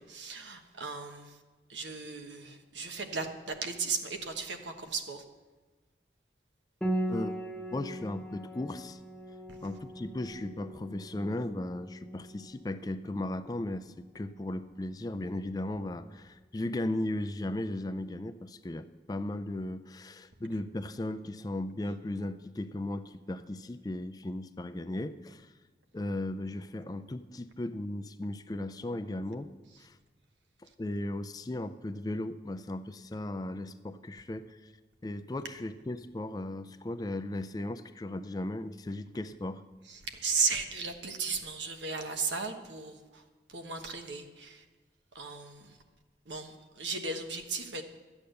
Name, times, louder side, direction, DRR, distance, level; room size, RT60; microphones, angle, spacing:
voice 1, 0.0-1.3 1.7-5.2 39.9-43.2 43.5-44.6 45.1-45.7 46.3-47.8, right 4 dB, 85° right, 6 dB, 1.2 m, -35 dB
Piano, 6.8-16.1, right 1 dB, 5° left, 0.8 m, -40 dB
voice 2, 7.1-7.4 7.7-9.0 9.6-25.5 25.9-29.5 29.8-30.0 30.8-34.7 35.0-39.6, left 1 dB, 20° left, 11 dB, 0.4 m, -36 dB
12.5 x 8.6 x 6.6 m, 1.3 s
head